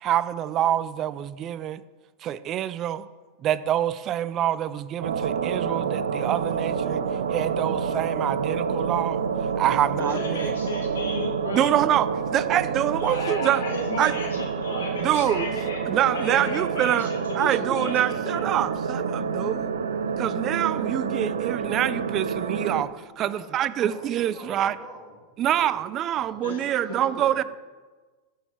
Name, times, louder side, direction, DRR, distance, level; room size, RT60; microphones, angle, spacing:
voice 1, 0.0-1.8 2.2-3.1 3.4-7.0 7.3-9.2 9.6-10.5 11.5-13.6 14.0-14.1 15.0-15.5 15.9-17.1 17.4-19.7 20.2-24.7 25.4-27.4, right 11 dB, 40° right, 16 dB, 0.5 m, -26 dB
sound 1, 5.0-22.8, right 6 dB, 90° right, 0.6 m, -28 dB
voice 2, 10.0-11.7 13.0-18.5 26.4-27.0, left 3 dB, 85° left, 1 dB, 2.1 m, -35 dB
voice 3, 23.2-27.4, equal, ahead, -5 dB, 3.2 m, -46 dB
14.5 x 6.7 x 4.4 m, 1.3 s
hypercardioid pair, 110°, 0 cm